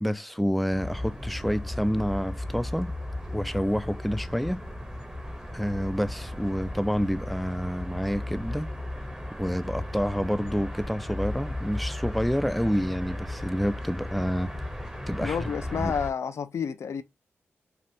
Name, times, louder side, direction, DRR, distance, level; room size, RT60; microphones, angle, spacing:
voice 1, 0.0-2.9 3.3-4.6 5.5-8.7 9.4-14.5 15.1-15.9, equal, ahead, 0.3 m, -28 dB
sound 1, 0.7-16.1, left 1 dB, 15° right, 0.9 m, -35 dB
voice 2, 15.2-17.0, left 7 dB, 75° left, 0.4 m, -30 dB
3.3 x 2.4 x 2.7 m
cardioid pair, 45°, 5 cm